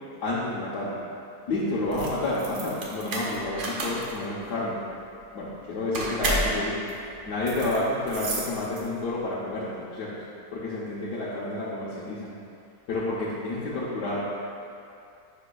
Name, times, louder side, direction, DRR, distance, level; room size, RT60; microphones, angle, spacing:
voice 1, 0.2-1.0 1.5-4.8 5.3-6.8 7.3-10.1 10.5-12.3 12.9-14.2, left 2 dB, 85° left, -8 dB, 1.5 m, -30 dB
sound 1, 1.9-9.1, right 1 dB, 50° right, 1.2 m, -32 dB
11.0 x 6.0 x 2.3 m, 2.5 s
omnidirectional pair, 1.7 m